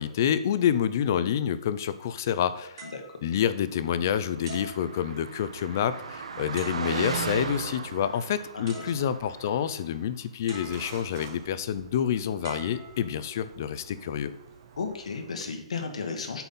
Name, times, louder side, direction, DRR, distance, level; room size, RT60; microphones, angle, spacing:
voice 1, 0.0-2.9 3.2-14.3, left 9 dB, 30° left, 13 dB, 0.4 m, -28 dB
sound 1, 2.8-4.0 4.4-5.6 6.6-7.3 8.3-8.4 8.7-9.5 10.5-11.3 12.4-13.5 14.3-14.5, right 4 dB, 50° right, 3.3 m, -46 dB
Car passing by, 4.0-9.9, right 5 dB, 75° right, 0.9 m, -37 dB
voice 2, 8.5-8.9 14.8-16.4, left 5 dB, 80° left, 5 dB, 1.5 m, -34 dB
sound 2, 10.5-15.5, right 7 dB, 25° right, 0.6 m, -49 dB
8.1 x 4.2 x 5.5 m, 0.79 s
hypercardioid pair, 180°, 3 cm